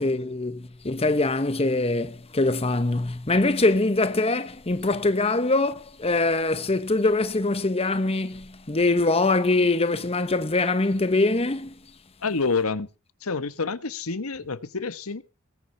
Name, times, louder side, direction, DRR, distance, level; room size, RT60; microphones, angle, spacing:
voice 1, 0.0-11.7, left 2 dB, 25° left, 1.0 m, -23 dB
voice 2, 12.2-12.9 13.2-15.2, left 4 dB, 75° left, 1.2 m, -28 dB
20.0 x 9.7 x 5.7 m
head